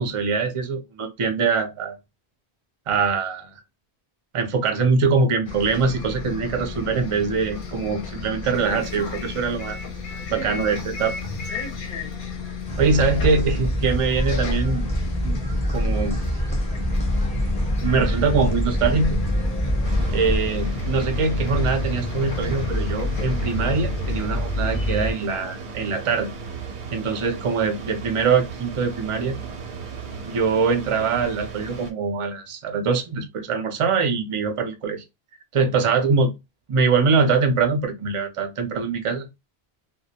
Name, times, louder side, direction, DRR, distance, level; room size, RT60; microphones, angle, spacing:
voice 1, 0.0-2.0 2.9-3.5 4.3-9.8 10.3-11.2 12.8-14.9 15.2-15.4 15.7-16.2 17.8-19.2 20.1-26.3 26.9-29.3 30.2-35.0 35.5-36.3 36.7-39.3, right 4 dB, 45° right, 0.4 m, -23 dB
Bus, 5.4-25.1, left 2 dB, 60° left, 0.7 m, -30 dB
sound 1, 12.7-20.4, equal, 10° left, 0.5 m, -25 dB
sound 2, 19.8-31.9, right 5 dB, 85° right, 0.9 m, -36 dB
2.2 x 2.1 x 2.7 m
omnidirectional pair, 1.1 m